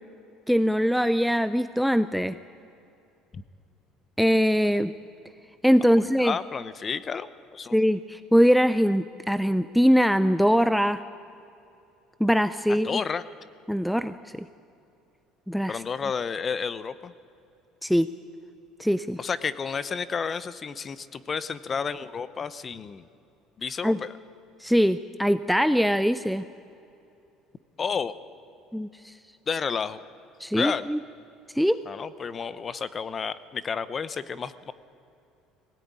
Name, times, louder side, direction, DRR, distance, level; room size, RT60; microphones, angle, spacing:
voice 1, 0.5-2.3 4.2-4.9 5.6-6.3 7.7-11.0 12.2-12.9 13.7-14.4 15.5-15.8 17.8-18.1 18.8-19.2 23.8-24.0 24.6-26.4 28.7-29.1 30.4-31.0 31.6-31.8, equal, ahead, 13 dB, 0.4 m, -22 dB
voice 2, 6.0-7.8 12.7-13.2 15.7-17.1 19.2-23.0 23.6-24.1 27.8-28.2 29.5-30.0 30.5-30.9 31.9-34.7, left 6 dB, 25° left, 16 dB, 0.7 m, -31 dB
21.0 x 17.0 x 9.6 m, 2.7 s
cardioid pair, 140°, 0 cm